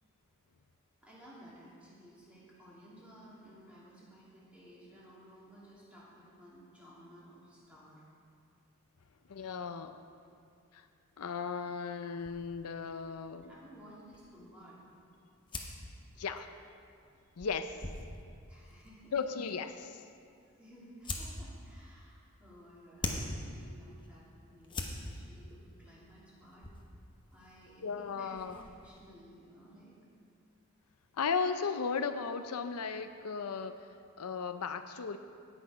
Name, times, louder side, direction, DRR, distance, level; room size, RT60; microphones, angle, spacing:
voice 1, 1.0-8.0 13.3-14.8 16.1-16.3 18.5-19.2 20.4-26.7 27.3-30.0, equal, 5° right, -8 dB, 2.8 m, -56 dB
voice 2, 9.3-10.0 10.7-10.9 11.2-13.4 16.2-16.5 17.4-17.8 19.1-20.0 27.8-28.6 31.1-33.9 34.2-35.2, left 5 dB, 90° left, 9 dB, 0.6 m, -36 dB
sound 1, 12.2-29.1, left 2 dB, 20° left, 0.9 m, -46 dB
17.5 x 6.3 x 5.0 m, 2.4 s
head